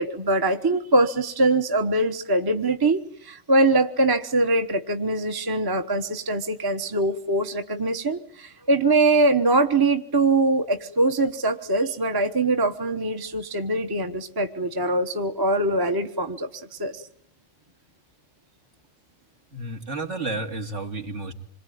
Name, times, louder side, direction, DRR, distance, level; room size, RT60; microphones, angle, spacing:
voice 1, 0.0-17.0, right 2 dB, 20° right, 6 dB, 1.1 m, -23 dB
voice 2, 19.5-21.3, right 2 dB, 60° right, 2 dB, 3.1 m, -31 dB
26.5 x 22.0 x 9.3 m, 0.67 s
omnidirectional pair, 1.4 m